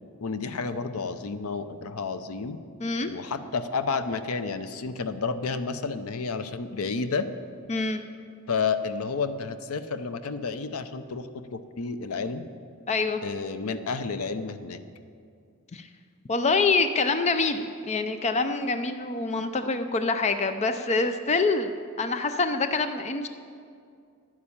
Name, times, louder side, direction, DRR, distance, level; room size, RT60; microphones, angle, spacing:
voice 1, 0.2-2.6 3.1-7.3 8.5-12.5 13.2-14.8, left 4 dB, 70° left, 11 dB, 0.6 m, -31 dB
voice 2, 2.8-3.1 7.7-8.0 12.9-13.2 15.7-15.9 16.3-23.3, left 3 dB, 30° left, 9 dB, 0.5 m, -26 dB
11.0 x 9.7 x 7.1 m, 2.3 s
head